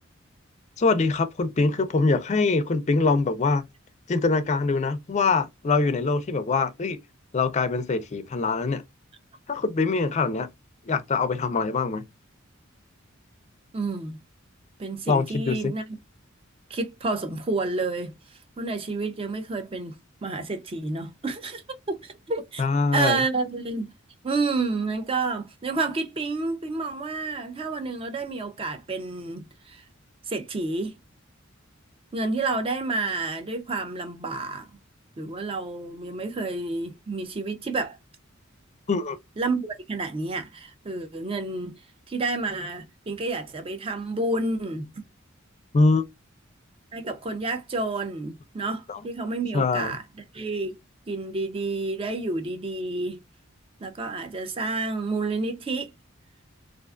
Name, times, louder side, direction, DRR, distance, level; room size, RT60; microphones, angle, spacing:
voice 1, 0.8-3.7 4.1-7.0 7.3-8.8 9.5-10.5 10.8-12.0 15.1-15.7 22.6-23.2 38.9-39.2 45.7-46.0 48.9-49.0 49.5-49.9, left 3 dB, 35° left, 0.4 m, -23 dB
voice 2, 13.7-14.2 14.8-15.8 16.7-21.6 21.9-22.6 22.9-23.9 24.2-29.8 30.3-30.9 32.1-34.7 35.2-38.0 39.4-41.8 42.1-45.0 46.9-50.0 50.3-50.8 51.1-53.2 53.8-55.9, right 3 dB, 25° right, 0.5 m, -30 dB
2.4 x 2.3 x 2.3 m
head